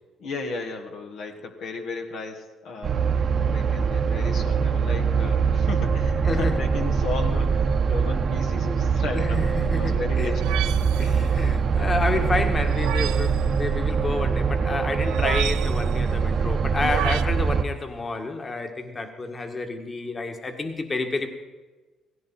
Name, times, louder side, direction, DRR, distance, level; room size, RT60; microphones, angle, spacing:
voice 1, 0.2-2.9 3.5-10.6 10.8-10.9, left 3 dB, 75° left, 2 dB, 1.7 m, -34 dB
sound 1, 2.8-17.6, right 5 dB, 50° right, 1.0 m, -23 dB
voice 2, 6.2-6.6 9.1-10.4 11.0-21.3, left 3 dB, 35° left, 5 dB, 2.0 m, -29 dB
sound 2, 10.4-11.2 12.6-13.4 15.0-15.9 16.7-17.2, right 14 dB, 80° right, 0.6 m, -31 dB
17.5 x 16.0 x 4.4 m, 1.3 s
supercardioid pair, 70°, 0 cm